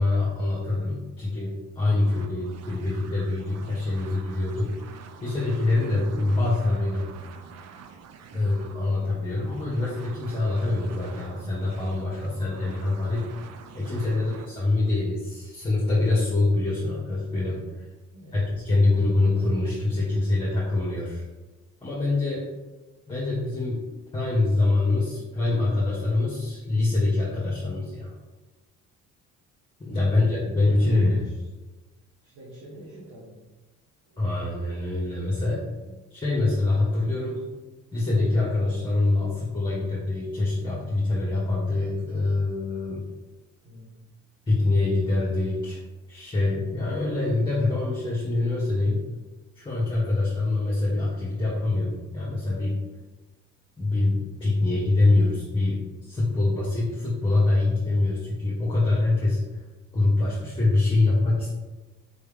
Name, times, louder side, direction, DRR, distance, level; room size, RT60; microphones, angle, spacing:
voice 1, 0.0-4.8 5.2-7.1 8.3-13.3 13.7-17.6 18.3-21.2 21.8-22.5 23.1-23.8 24.1-28.1 29.8-31.2 34.2-35.7 36.1-37.4 37.9-43.0 44.5-45.8 46.1-49.0 49.5-52.8 53.8-59.4 59.9-61.5, left 2 dB, 15° left, -6 dB, 1.4 m, -24 dB
sound 1, 1.9-14.5, right 6 dB, 60° right, 0.5 m, -47 dB
voice 2, 8.3-8.7 18.1-19.2 29.8-30.2 30.8-31.5 32.2-33.5 34.1-34.2 35.8-36.0 43.6-44.1 54.6-54.9, right 1 dB, 80° right, -7 dB, 1.3 m, -48 dB
4.3 x 3.3 x 3.6 m, 1.2 s
cardioid pair, 90°, 30 cm